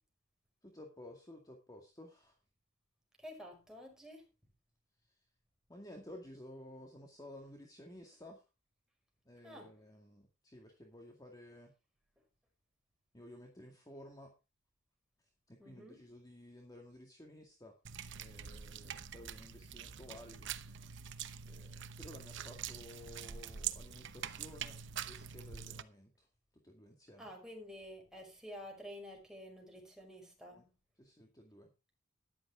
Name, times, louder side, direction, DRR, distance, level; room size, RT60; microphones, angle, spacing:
voice 1, 0.6-2.4 5.7-8.4 9.3-11.7 13.1-14.4 15.5-17.7 18.2-20.5 21.4-26.3 26.5-27.3 30.5-30.6 31.0-31.7, left 1 dB, 20° left, 2.1 m, -54 dB
voice 2, 3.2-4.3 9.4-9.7 15.6-16.0 27.2-30.7, equal, 5° right, 5.3 m, -50 dB
sound 1, 17.8-25.8, right 8 dB, 65° right, 0.9 m, -45 dB
13.5 x 11.5 x 3.6 m
head